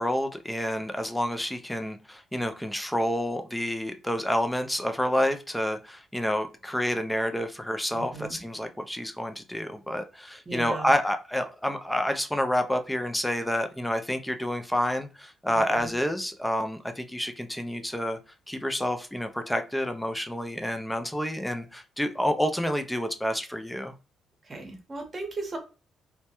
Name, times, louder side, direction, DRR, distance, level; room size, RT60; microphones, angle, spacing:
voice 1, 0.0-18.2 18.5-23.9, equal, 5° left, 7 dB, 0.3 m, -29 dB
voice 2, 7.9-8.4 10.5-10.9 15.5-15.9 24.5-25.6, right 3 dB, 30° right, 4 dB, 0.8 m, -37 dB
2.1 x 2.1 x 2.8 m, 0.33 s
cardioid pair, 90°, 0 cm